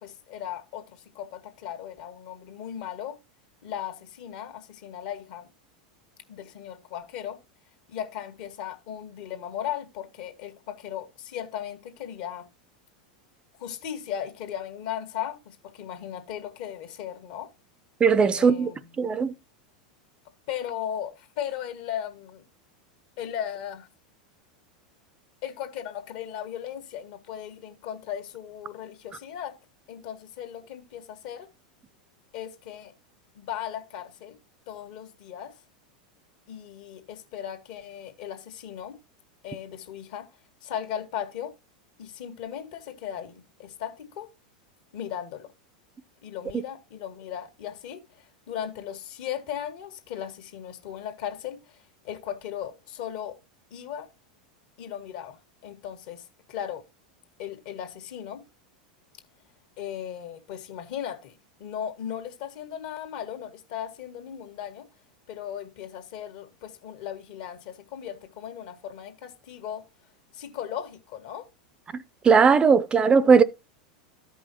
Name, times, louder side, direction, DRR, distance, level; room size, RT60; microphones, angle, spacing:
voice 1, 0.0-3.2 3.6-5.5 6.3-7.4 7.9-12.5 13.6-17.5 18.3-19.0 20.5-22.4 23.2-23.9 25.4-29.5 29.9-31.5 32.3-32.9 33.3-34.4 34.7-35.5 36.5-39.0 39.4-40.3 40.6-41.5 42.0-44.3 44.9-45.5 46.2-53.4 53.7-54.1 54.8-56.8 57.4-58.4 59.8-64.9 65.3-69.8 70.3-71.5, left 10 dB, 60° left, 1.6 m, -37 dB
voice 2, 18.0-18.7 19.0-19.3 46.5-46.6 72.2-73.4, right 5 dB, 25° right, 0.5 m, -18 dB
13.5 x 5.4 x 2.9 m
hypercardioid pair, 95°, 4 cm